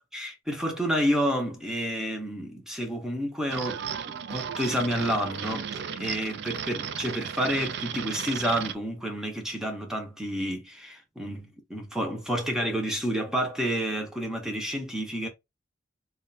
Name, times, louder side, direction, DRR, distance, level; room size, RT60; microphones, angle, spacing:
voice 1, 0.0-5.7 6.0-15.3, equal, 5° right, 0.7 m, -30 dB
sound 1, 3.5-8.7, right 7 dB, 60° right, 0.3 m, -34 dB
2.4 x 2.2 x 3.9 m
head